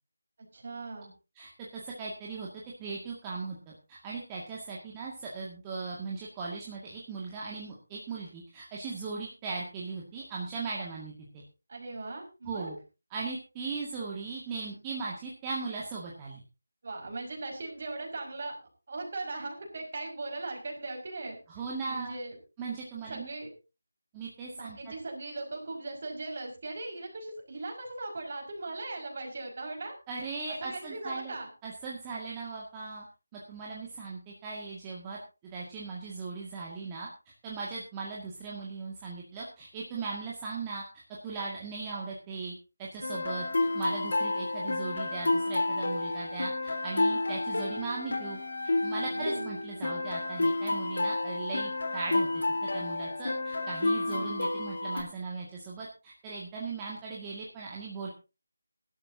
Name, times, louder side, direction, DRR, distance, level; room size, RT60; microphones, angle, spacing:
voice 1, 0.5-1.1 11.7-12.7 16.8-18.6 18.9-21.4 21.9-22.4 23.1-23.5 24.5-30.0 30.5-31.5 49.0-49.6 54.0-54.4, right 2 dB, 45° right, 1 dB, 5.3 m, -39 dB
voice 2, 1.4-2.5 2.8-11.4 12.4-12.8 13.1-16.4 21.6-22.1 22.6-23.3 24.1-24.9 30.1-31.4 31.6-33.0 33.3-37.1 37.4-40.8 41.2-48.4 48.8-52.4 52.7-58.1, right 4 dB, 15° right, -4 dB, 2.0 m, -38 dB
sound 1, 43.0-55.0, left 2 dB, 65° left, 3.6 m, -30 dB
20.0 x 12.0 x 2.8 m, 0.30 s
figure-of-eight pair, 160°, 0 cm